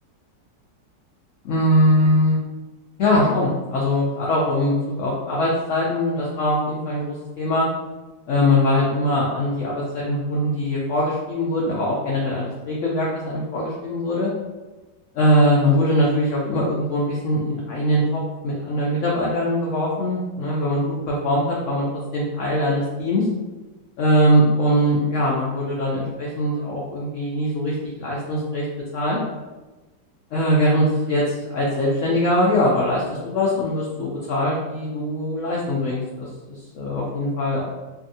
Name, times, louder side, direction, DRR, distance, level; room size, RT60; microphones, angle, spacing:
voice 1, 1.4-2.4 3.0-7.7 8.3-14.3 15.1-21.9 22.1-23.2 24.0-28.6 28.9-29.2 30.3-37.6, equal, 80° left, -5 dB, 0.6 m, -21 dB
2.6 x 2.6 x 2.6 m, 1.2 s
omnidirectional pair, 1.9 m